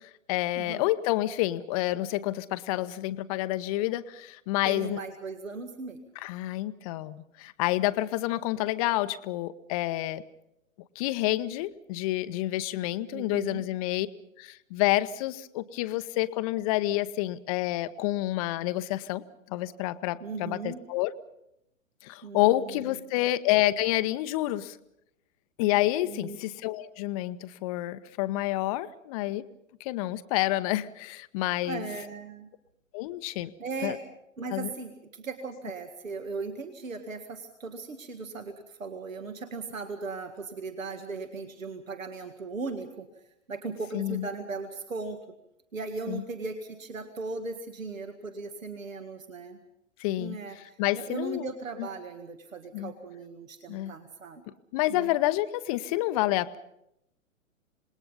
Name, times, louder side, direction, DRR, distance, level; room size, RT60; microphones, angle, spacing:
voice 1, 0.0-5.0 6.2-10.2 11.0-14.1 14.4-19.2 19.5-21.1 22.0-24.8 25.6-29.4 29.8-31.8 32.9-33.5 33.8-34.0 34.5-34.7 43.9-44.3 46.1-46.2 50.0-50.4 50.8-51.5 52.7-52.9 53.7-53.9 54.7-56.6, left 16 dB, 25° left, 13 dB, 0.8 m, -28 dB
voice 2, 0.6-0.9 4.6-6.0 13.1-13.6 20.2-20.8 22.2-23.0 26.0-26.4 31.6-32.5 33.6-34.0 34.4-43.1 43.5-45.2 45.7-49.6 50.2-54.4 54.9-55.1, right 3 dB, 75° right, 6 dB, 2.0 m, -38 dB
27.0 x 20.0 x 5.4 m, 0.80 s
figure-of-eight pair, 120°, 40 cm